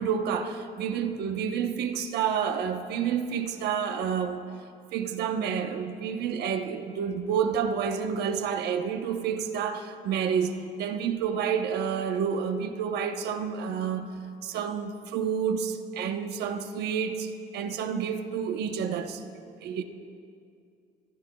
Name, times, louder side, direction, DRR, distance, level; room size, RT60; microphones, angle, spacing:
voice 1, 0.0-4.5 4.9-14.1 14.4-19.2 19.6-19.8, right 7 dB, 75° right, 1.0 m, -29 dB
27.0 x 15.0 x 2.4 m
cardioid pair, 110°, 17 cm